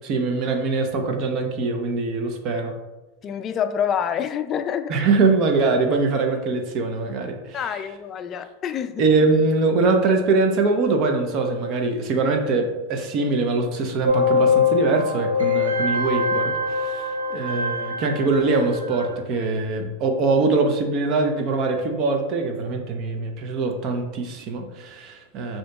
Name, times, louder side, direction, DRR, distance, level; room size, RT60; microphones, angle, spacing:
voice 1, 0.0-2.7 4.9-7.6 9.0-25.6, right 3 dB, 45° right, 4 dB, 0.7 m, -23 dB
voice 2, 3.2-4.9 7.5-9.0, left 8 dB, 35° left, 9 dB, 0.3 m, -27 dB
sound 1, 14.0-19.1, left 4 dB, 85° right, 0.7 m, -23 dB
6.2 x 2.8 x 2.3 m, 1.1 s
hypercardioid pair, 100°, 0 cm